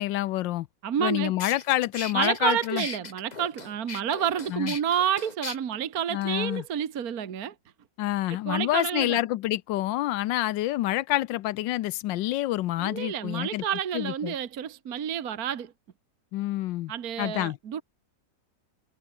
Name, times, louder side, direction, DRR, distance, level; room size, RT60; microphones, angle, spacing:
voice 1, 0.0-0.7 1.0-2.8 4.5-4.7 6.1-6.6 8.0-13.6 13.9-14.3 16.3-16.9 17.2-17.6, left 15 dB, 85° left, 1.3 m, -27 dB
voice 2, 0.8-1.3 2.1-7.5 8.4-9.2 12.8-15.7 16.9-17.8, right 9 dB, 55° right, 1.7 m, -29 dB
sound 1, 1.0-1.1 1.4-5.6, left 4 dB, 25° left, 1.3 m, -38 dB
omnidirectional pair, 1.9 m